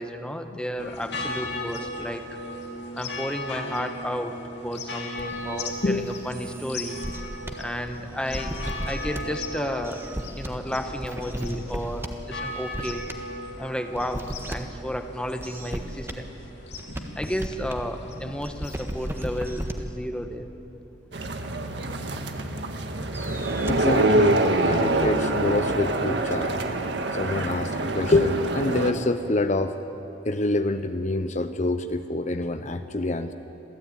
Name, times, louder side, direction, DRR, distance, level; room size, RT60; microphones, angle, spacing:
voice 1, 0.0-2.2 2.9-7.0 7.6-10.1 10.4-13.0 13.6-16.4 17.2-20.5, equal, 5° left, 6 dB, 1.3 m, -32 dB
sound 1, 0.8-19.7, left 1 dB, 85° left, 2.8 m, -37 dB
sound 2, 5.2-7.6 7.9-9.2 9.8-10.6 11.0-12.1 12.4-13.1 14.0-14.6 15.4-16.1 16.7-17.8 18.4-19.8 23.0-23.8, equal, 15° right, 1.6 m, -35 dB
voice 2, 16.9-17.3 23.7-26.6 27.1-29.8 30.2-33.3, left 2 dB, 45° left, 9 dB, 0.8 m, -26 dB
sound 3, 21.1-28.9, right 2 dB, 90° right, 1.7 m, -25 dB
27.0 x 16.5 x 9.5 m, 3.0 s
head